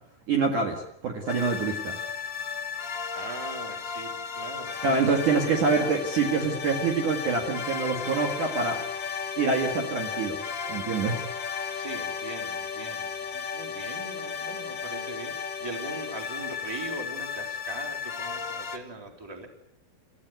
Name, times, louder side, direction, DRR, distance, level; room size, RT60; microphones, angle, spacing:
voice 1, 0.3-2.0 4.8-8.8 9.4-10.4 10.7-11.2, right 4 dB, 50° right, 2 dB, 3.0 m, -26 dB
sound 1, 1.3-18.8, left 6 dB, 45° left, 1.5 m, -34 dB
voice 2, 3.1-5.1 11.7-19.5, right 2 dB, 5° right, 3 dB, 3.1 m, -40 dB
29.0 x 15.0 x 9.5 m, 0.74 s
omnidirectional pair, 5.3 m